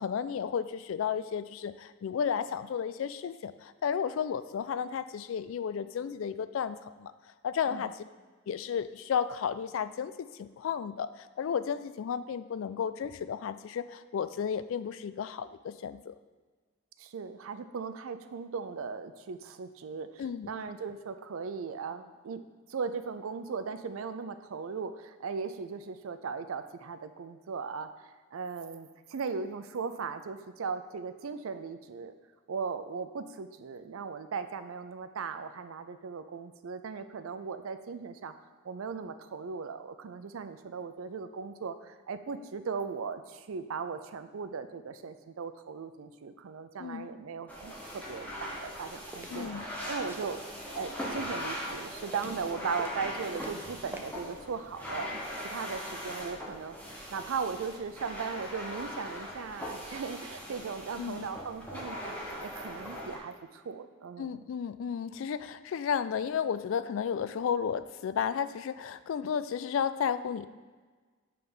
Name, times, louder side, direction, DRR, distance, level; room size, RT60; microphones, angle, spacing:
voice 1, 0.0-7.1 7.4-7.9 8.5-16.2 20.2-20.5 46.8-47.1 49.3-49.7 61.0-61.3 64.2-70.5, left 7 dB, 70° left, 14 dB, 0.3 m, -33 dB
voice 2, 17.0-22.4 22.7-27.9 28.3-32.1 32.5-38.3 38.6-50.4 50.7-55.2 55.4-64.4, right 5 dB, 80° right, 10 dB, 0.4 m, -38 dB
sound 1, 47.5-63.2, equal, 5° left, 1.0 m, -40 dB
sound 2, 49.1-49.4 50.0-51.3 51.7-52.5 52.8-53.7 53.9-54.0, right 1 dB, 10° right, 0.5 m, -46 dB
7.7 x 3.4 x 5.4 m, 1.4 s
head